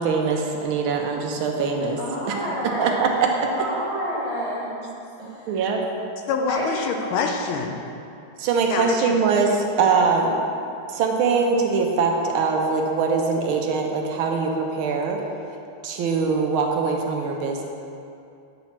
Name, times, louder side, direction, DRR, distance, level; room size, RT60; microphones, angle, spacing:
voice 1, 0.0-2.0 2.8-3.3 5.5-5.8 8.4-10.4 10.9-15.2 15.8-17.6, right 5 dB, 80° right, 2 dB, 1.4 m, -22 dB
voice 2, 1.8-6.0 6.5-6.8, equal, 35° right, -8 dB, 0.5 m, -30 dB
voice 3, 6.3-7.8 8.7-9.2, left 5 dB, 75° left, 3 dB, 1.4 m, -25 dB
8.7 x 3.0 x 5.7 m, 2.6 s
omnidirectional pair, 2.4 m